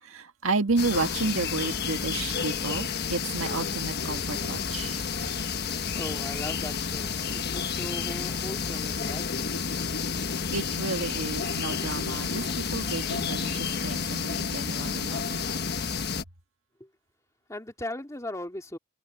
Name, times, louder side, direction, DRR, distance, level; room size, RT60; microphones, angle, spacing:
voice 1, 0.0-5.0 10.2-15.5, right 3 dB, 75° right, 1.9 m, -32 dB
sound 1, 0.8-16.2, left 5 dB, 50° left, 1.3 m, -30 dB
voice 2, 5.9-9.5 16.8-16.9 17.5-18.8, left 1 dB, 15° left, 2.8 m, -38 dB
head